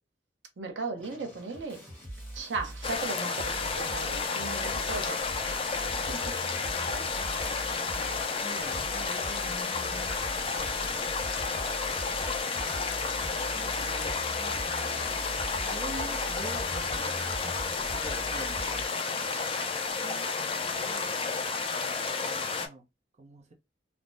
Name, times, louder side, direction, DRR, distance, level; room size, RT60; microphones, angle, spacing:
voice 1, 0.6-1.8 2.3-5.2 6.1-6.3 6.9-7.1, right 3 dB, 80° right, 0.7 m, -37 dB
sound 1, 1.0-18.9, right 1 dB, 10° left, 1.2 m, -42 dB
sound 2, 2.8-22.7, left 4 dB, 30° left, 0.4 m, -31 dB
voice 2, 3.1-3.4 7.7-10.5 13.4-17.6 17.8-18.8 19.9-20.3 20.8-21.4 22.2-22.8 23.2-23.5, right 2 dB, 40° right, 0.5 m, -46 dB
3.3 x 2.0 x 2.5 m
head